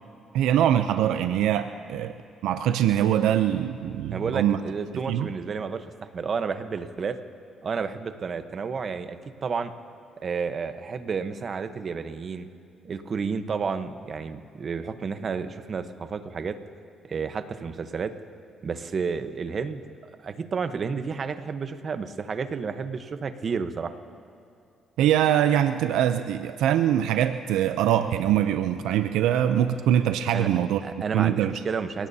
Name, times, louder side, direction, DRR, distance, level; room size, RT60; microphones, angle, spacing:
voice 1, 0.3-2.1 2.4-4.6 5.1-5.3 25.0-30.8 31.1-31.5, right 11 dB, 90° right, 9 dB, 0.5 m, -23 dB
voice 2, 4.1-7.2 7.6-9.7 10.2-12.5 12.8-16.6 17.0-18.1 18.6-19.8 20.2-23.9 30.3-30.5 30.8-32.1, right 5 dB, 45° right, 9 dB, 1.0 m, -31 dB
28.5 x 17.5 x 2.8 m, 2.5 s
cardioid pair, 85°, 0 cm